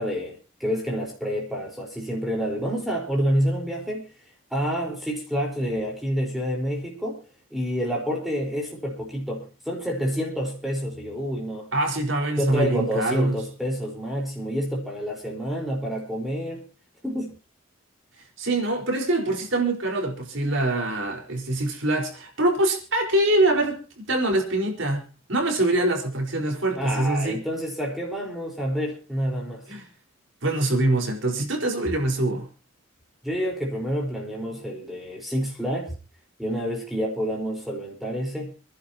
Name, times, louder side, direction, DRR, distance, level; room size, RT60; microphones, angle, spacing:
voice 1, 0.0-4.1 4.5-7.2 7.5-11.7 12.4-16.6 17.0-17.3 26.8-29.6 33.2-35.9 36.4-38.5, equal, ahead, 4.6 m, -28 dB
voice 2, 11.7-13.3 18.4-25.0 25.3-27.4 29.7-29.8 30.4-32.5, right 2 dB, 65° right, 4.8 m, -24 dB
29.0 x 11.5 x 3.0 m
head